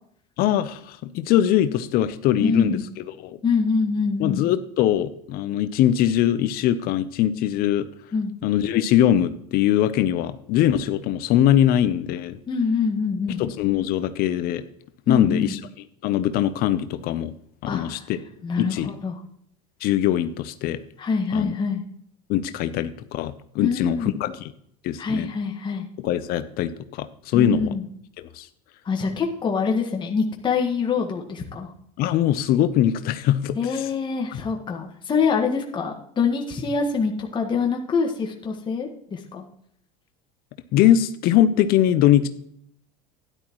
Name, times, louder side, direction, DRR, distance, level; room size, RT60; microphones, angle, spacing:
voice 1, 0.4-2.8 3.2-3.4 4.2-7.9 8.4-12.4 13.4-14.6 15.1-15.6 16.0-17.3 17.6-18.2 18.6-18.9 19.8-20.8 21.3-21.5 22.3-24.4 24.8-25.3 26.0-27.7 28.2-28.5 32.0-33.9 34.3-34.4 40.7-42.3, left 11 dB, 55° left, 12 dB, 0.7 m, -22 dB
voice 2, 2.4-2.8 3.4-4.4 8.1-8.3 12.5-13.4 15.1-15.5 17.7-18.0 18.4-19.2 21.0-21.8 23.6-24.1 25.0-25.8 27.3-27.8 28.8-31.7 33.5-39.4, left 5 dB, 25° left, 1 dB, 1.6 m, -25 dB
12.5 x 11.0 x 3.1 m, 0.67 s
supercardioid pair, 100°, 19 cm